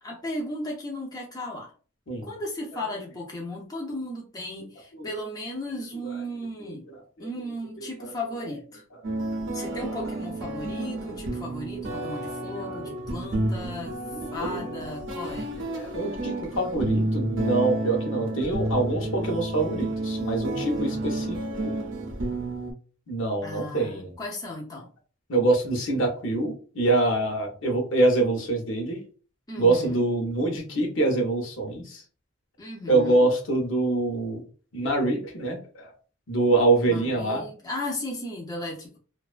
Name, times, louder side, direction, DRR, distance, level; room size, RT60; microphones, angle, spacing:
voice 1, 0.0-1.7 2.2-6.8 7.2-8.8 9.5-13.9 14.3-15.5 23.4-24.9 29.5-30.1 32.6-33.3 36.8-39.0, left 1 dB, 20° left, -1 dB, 0.4 m, -35 dB
sound 1, 9.0-22.7, right 1 dB, 60° right, 0.5 m, -30 dB
voice 2, 11.7-13.2 14.1-14.7 15.5-21.7 23.1-24.2 25.3-29.0 29.6-32.0 32.9-34.4 34.7-35.9 36.3-37.5, right 2 dB, 65° left, 2 dB, 0.7 m, -25 dB
2.5 x 2.2 x 2.3 m, 0.39 s
head